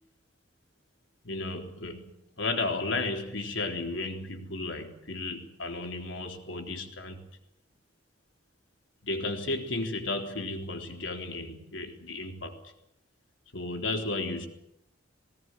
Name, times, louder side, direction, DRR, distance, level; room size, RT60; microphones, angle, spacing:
voice 1, 1.2-7.3 9.0-12.7 13.5-14.5, left 2 dB, 80° left, 4 dB, 3.7 m, -34 dB
20.5 x 18.0 x 9.2 m, 0.83 s
head